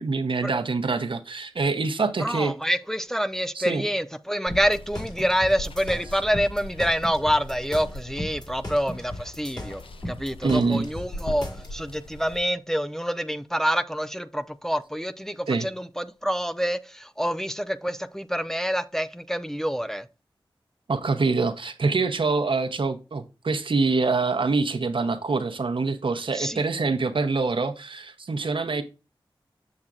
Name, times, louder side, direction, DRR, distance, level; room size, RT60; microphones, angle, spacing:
voice 1, 0.0-2.5 3.5-3.8 10.4-10.9 15.5-15.7 20.9-28.8, right 4 dB, 65° right, 0.8 m, -25 dB
voice 2, 2.2-20.1 26.3-26.6, equal, 5° left, 0.5 m, -27 dB
Water, 4.5-12.4, left 1 dB, 75° left, 0.6 m, -41 dB
sound 1, 4.5-11.7, left 1 dB, 45° left, 2.6 m, -36 dB
7.2 x 6.4 x 2.4 m
cardioid pair, 50°, 9 cm